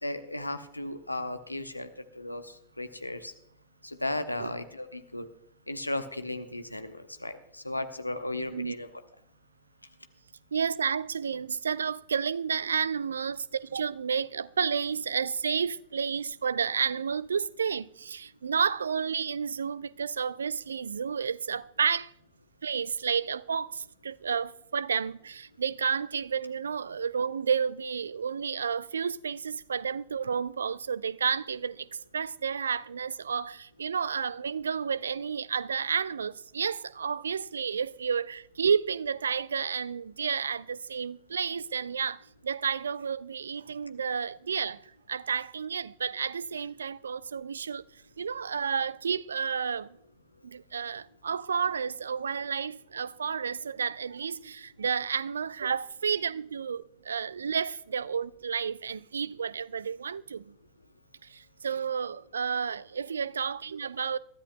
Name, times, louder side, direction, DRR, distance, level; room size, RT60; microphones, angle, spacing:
voice 1, 0.0-1.9 2.2-2.4 2.8-3.3 3.8-5.3 5.7-8.9, left 1 dB, 85° left, 0.9 m, -35 dB
voice 2, 10.5-22.1 22.6-31.9 32.1-47.8 48.2-50.0 50.4-60.5 61.2-64.2, right 6 dB, 70° right, 0.4 m, -31 dB
23.0 x 13.0 x 2.2 m
figure-of-eight pair, 90°, 0 cm